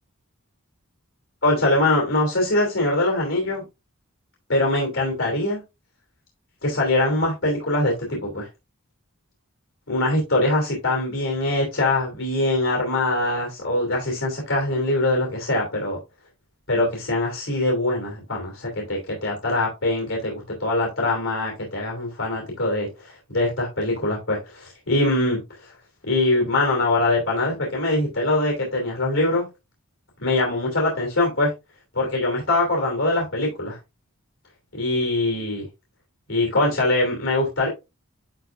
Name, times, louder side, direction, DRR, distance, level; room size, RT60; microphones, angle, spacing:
voice 1, 1.4-3.6 4.5-5.6 6.6-8.5 9.9-16.0 16.7-25.4 26.1-29.4 30.2-31.5 31.9-33.8 34.7-35.6 36.3-37.7, left 2 dB, 65° left, 0 dB, 2.9 m, -23 dB
10.5 x 4.3 x 2.5 m, 0.24 s
head